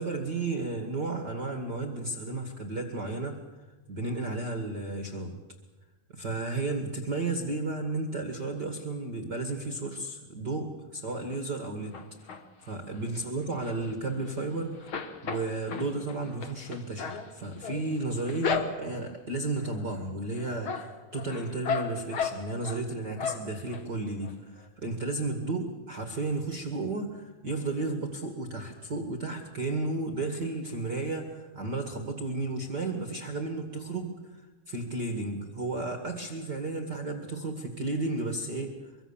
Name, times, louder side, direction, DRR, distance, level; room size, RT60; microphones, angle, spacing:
voice 1, 0.0-3.4 3.9-5.4 6.1-12.0 12.6-14.9 15.2-39.0, right 2 dB, 50° right, 5 dB, 1.2 m, -33 dB
sound 1, 11.9-12.7 13.1-14.5 14.7-19.1 19.6-20.0 20.4-22.8 23.2-23.8 24.2-24.3 24.6-24.7, left 6 dB, 70° left, 1.2 m, -35 dB
24.0 x 23.5 x 7.3 m, 1.2 s
omnidirectional pair, 5.0 m